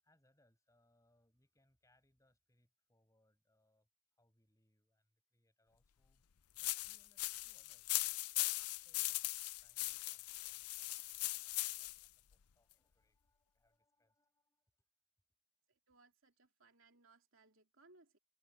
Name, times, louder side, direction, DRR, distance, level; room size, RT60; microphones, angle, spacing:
voice 1, 0.0-3.9 4.2-6.2 6.6-8.1 8.8-9.2 9.6-11.3 11.6-14.9, left 1 dB, 15° left, 7.7 m, -78 dB
sound 1, 6.6-12.1, left 18 dB, 85° left, 0.6 m, -40 dB
voice 2, 15.7-18.2, right 3 dB, 60° right, 2.8 m, -67 dB
head